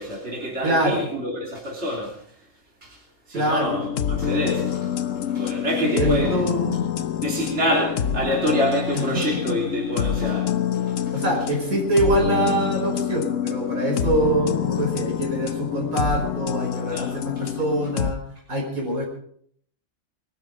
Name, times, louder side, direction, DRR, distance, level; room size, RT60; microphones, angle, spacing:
voice 1, 0.0-2.2 2.8-3.0 3.3-4.9 5.3-6.3 7.1-10.6 11.1-11.2 16.9-17.1, equal, 50° right, 3.6 m, -26 dB
voice 2, 0.6-1.1 3.3-3.8 5.8-6.9 8.9-9.6 11.1-18.2 18.5-19.0, right 1 dB, 75° right, 5.4 m, -24 dB
sound 1, 3.6-18.1, left 9 dB, 65° left, 1.1 m, -26 dB
21.5 x 12.5 x 4.8 m
omnidirectional pair, 1.5 m